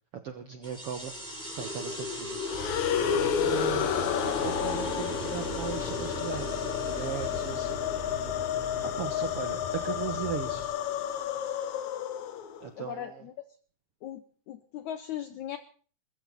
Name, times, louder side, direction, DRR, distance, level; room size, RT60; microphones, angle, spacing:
voice 1, 0.1-2.5 3.4-7.9 8.8-10.7 12.6-13.3, right 8 dB, 80° right, 8 dB, 1.3 m, -38 dB
sound 1, 0.6-11.7, left 1 dB, ahead, 6.4 m, -37 dB
sound 2, 2.4-12.7, left 10 dB, 65° left, 2.0 m, -31 dB
sound 3, 2.5-10.7, left 2 dB, 45° left, 5.6 m, -42 dB
voice 2, 12.8-13.1 14.0-15.6, left 11 dB, 85° left, 11 dB, 1.6 m, -38 dB
21.5 x 14.5 x 4.1 m, 0.41 s
omnidirectional pair, 4.5 m